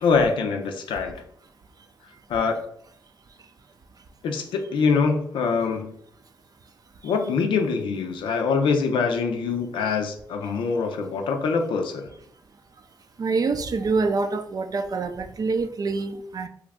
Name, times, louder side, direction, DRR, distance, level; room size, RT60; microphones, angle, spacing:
voice 1, 0.0-1.2 2.3-2.6 4.2-5.9 7.0-12.1, left 5 dB, 85° left, 4 dB, 0.4 m, -24 dB
voice 2, 13.2-16.5, right 4 dB, 50° right, 8 dB, 0.4 m, -26 dB
3.0 x 2.4 x 3.4 m, 0.68 s
supercardioid pair, 50°, 8 cm